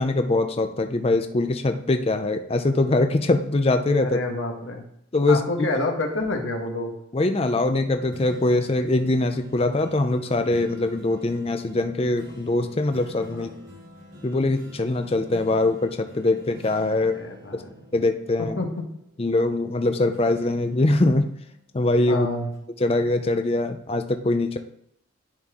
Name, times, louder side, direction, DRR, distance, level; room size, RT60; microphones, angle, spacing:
voice 1, 0.0-4.2 5.1-5.7 7.1-13.5 14.2-17.1 17.5-17.6 17.9-18.6 19.2-21.3 21.7-22.3 22.8-24.6, left 2 dB, 30° left, 7 dB, 0.5 m, -22 dB
voice 2, 4.0-4.8 5.3-6.9 17.1-17.7 18.6-18.7 22.1-22.5, left 2 dB, 70° left, 2 dB, 1.4 m, -28 dB
sound 1, 8.1-19.7 20.1-22.0 22.5-22.6, equal, 85° right, 3.1 m, -47 dB
10.5 x 4.3 x 3.7 m, 0.73 s
head